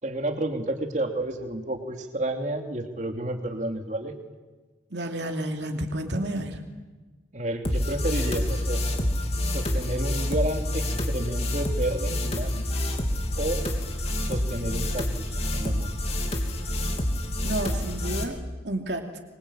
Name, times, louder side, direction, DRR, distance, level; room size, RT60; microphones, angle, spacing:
voice 1, 0.0-4.2 7.3-8.8 9.4-12.6 13.4-13.7 14.2-16.3, right 1 dB, 40° right, 4 dB, 3.0 m, -31 dB
voice 2, 4.9-6.6 17.4-19.2, right 1 dB, 65° right, 3 dB, 2.9 m, -31 dB
sound 1, 7.6-18.2, left 1 dB, 30° left, 3.1 m, -27 dB
25.5 x 24.0 x 8.9 m, 1.3 s
head